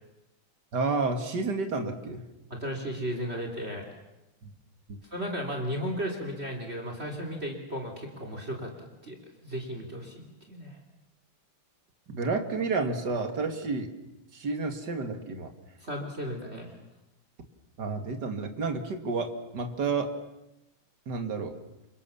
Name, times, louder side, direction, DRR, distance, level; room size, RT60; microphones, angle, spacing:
voice 1, 0.7-2.2 4.4-4.5 4.9-5.0 12.1-13.9 14.3-15.5 17.8-20.1 21.1-21.5, right 4 dB, 50° right, 6 dB, 2.8 m, -30 dB
voice 2, 2.5-3.9 5.1-9.2 9.4-10.8 15.8-16.7, equal, 30° right, 3 dB, 3.7 m, -35 dB
29.5 x 25.0 x 7.2 m, 0.95 s
omnidirectional pair, 2.4 m